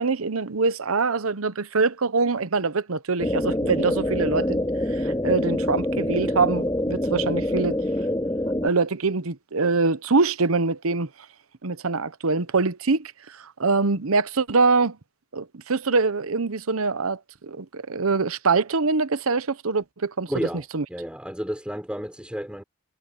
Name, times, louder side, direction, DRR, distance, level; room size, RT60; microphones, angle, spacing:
voice 1, 0.0-4.6 4.9-7.8 8.6-11.1 11.6-15.0 15.3-20.3 20.7-20.8, right 4 dB, 75° right, 0.9 m, -24 dB
sound 1, 3.2-8.7, left 1 dB, 15° left, 2.4 m, -25 dB
voice 2, 20.3-22.6, equal, 5° right, 4.3 m, -31 dB
head